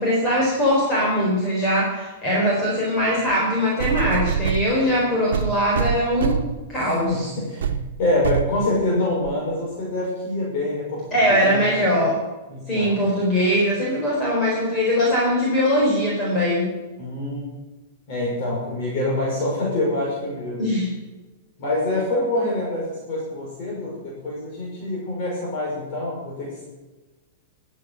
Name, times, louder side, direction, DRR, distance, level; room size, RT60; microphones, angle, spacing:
voice 1, 0.0-6.4 6.7-7.3 11.1-12.2 12.7-16.7 20.6-20.9, equal, 20° left, -4 dB, 4.3 m, -21 dB
sound 1, 3.3-3.4 3.8-4.7 5.3-6.6 7.1-7.2 7.6-7.8 8.2-8.5 9.2-9.3, right 7 dB, 90° right, 1.1 m, -24 dB
voice 2, 7.1-7.7 8.0-11.7 12.5-13.0 17.0-17.4 18.1-20.6 21.6-26.6, left 1 dB, 45° left, -4 dB, 5.5 m, -26 dB
19.5 x 8.5 x 6.4 m, 1.2 s
supercardioid pair, 155°, 0 cm